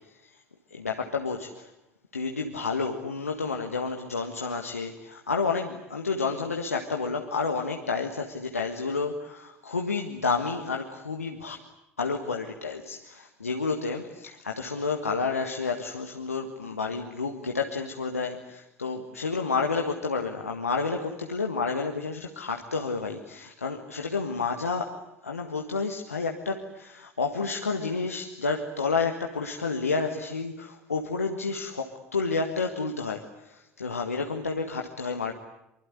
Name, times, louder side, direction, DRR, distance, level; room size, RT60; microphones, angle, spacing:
voice 1, 0.7-1.7 2.1-11.6 12.0-35.3, left 4 dB, 80° left, 3 dB, 1.6 m, -30 dB
25.0 x 24.0 x 9.9 m, 0.89 s
figure-of-eight pair, 65°, 8 cm